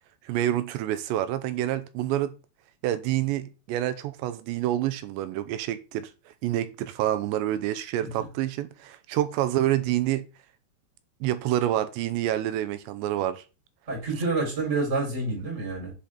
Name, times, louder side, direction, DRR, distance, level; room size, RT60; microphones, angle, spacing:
voice 1, 0.2-2.4 2.8-10.3 11.2-13.4, right 13 dB, 85° right, 3.0 m, -27 dB
voice 2, 13.9-15.9, right 3 dB, 15° right, 4.3 m, -28 dB
7.7 x 7.3 x 3.8 m
omnidirectional pair, 5.1 m